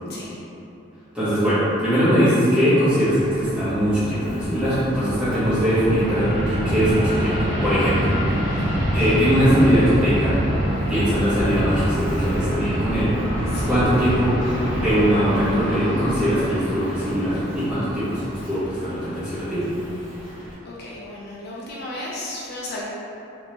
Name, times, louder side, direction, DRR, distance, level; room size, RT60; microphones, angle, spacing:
voice 1, 1.1-7.4 7.6-8.1 8.5-10.4 10.9-14.3 14.7-19.6, equal, 5° right, -14 dB, 1.3 m, -21 dB
Fixed-wing aircraft airplane, 2.7-20.5, equal, 30° right, 1.3 m, -26 dB
voice 2, 13.5-13.8 20.6-22.8, left 1 dB, 50° left, -5 dB, 0.5 m, -34 dB
3.4 x 3.2 x 2.9 m, 2.9 s
head